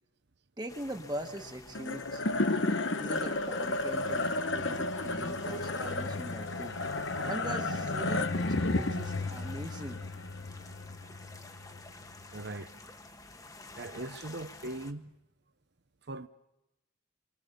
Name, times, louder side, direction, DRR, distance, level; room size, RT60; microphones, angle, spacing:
voice 1, 0.6-2.4 3.0-6.8 7.2-10.0, right 1 dB, 20° right, 1.5 m, -41 dB
sound 1, 0.7-14.9, left 2 dB, 15° left, 1.2 m, -51 dB
sound 2, 1.7-12.2, left 2 dB, 65° left, 1.2 m, -33 dB
voice 2, 12.3-12.7 13.8-15.1 16.1-16.3, right 2 dB, 55° right, 0.9 m, -40 dB
29.5 x 23.5 x 6.9 m
head